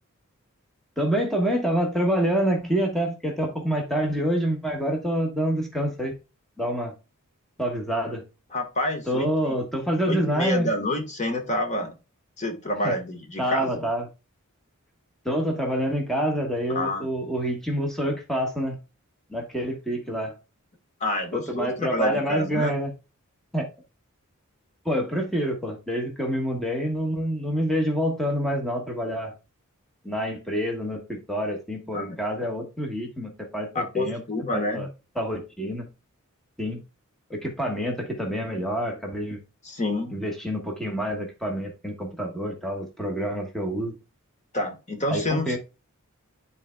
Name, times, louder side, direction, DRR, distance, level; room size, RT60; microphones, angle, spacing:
voice 1, 1.0-6.1 6.6-6.9 7.6-8.2 9.1-10.7 12.8-12.9 13.4-14.1 15.2-18.8 19.3-20.3 21.3-22.9 23.5-23.7 24.8-29.3 30.0-34.2 34.5-34.9 35.2-35.9 36.6-36.8 37.3-39.4 40.1-43.9 45.1-45.6, equal, ahead, 1.2 m, -27 dB
voice 2, 8.5-9.3 10.1-11.9 12.4-13.8 16.7-17.1 21.0-22.8 31.9-32.2 33.7-34.9 39.6-40.2 44.5-45.6, left 1 dB, 35° left, 1.3 m, -28 dB
12.0 x 4.1 x 2.2 m
head